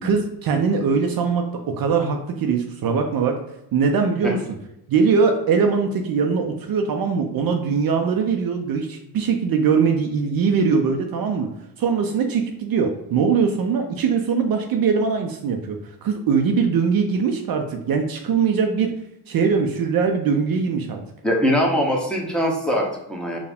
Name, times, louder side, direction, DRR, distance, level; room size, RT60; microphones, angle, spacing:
voice 1, 0.0-3.4 3.7-4.4 4.9-11.5 11.8-18.9 19.3-21.0, right 5 dB, 55° right, 4 dB, 0.6 m, -21 dB
voice 2, 21.2-23.4, equal, ahead, -3 dB, 1.0 m, -22 dB
4.6 x 2.3 x 3.4 m, 0.86 s
cardioid pair, 85°, 43 cm